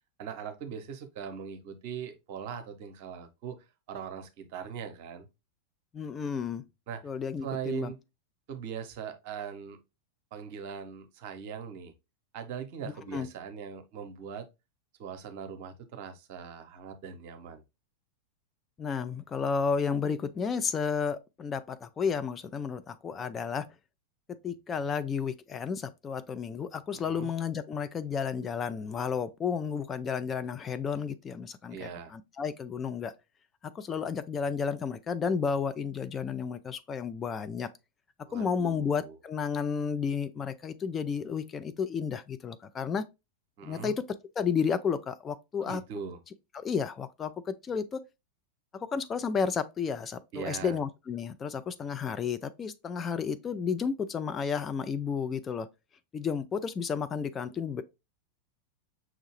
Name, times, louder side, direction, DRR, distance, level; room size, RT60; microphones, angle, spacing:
voice 1, 0.2-5.3 6.9-7.0 7.4-8.0 8.5-9.8 10.3-11.9 12.3-14.5 15.0-17.6 26.9-27.3 31.7-32.1 38.3-39.2 43.6-44.0 45.6-46.2 50.3-50.8, right 7 dB, 45° right, 0.8 m, -40 dB
voice 2, 5.9-6.6 7.0-7.9 13.1-13.3 18.8-23.7 24.4-33.1 33.7-37.7 38.3-43.0 43.6-44.0 44.4-45.8 46.5-48.0 48.7-55.7 56.1-57.8, left 6 dB, 20° left, 0.4 m, -32 dB
5.9 x 2.7 x 3.0 m
figure-of-eight pair, 90°, 0 cm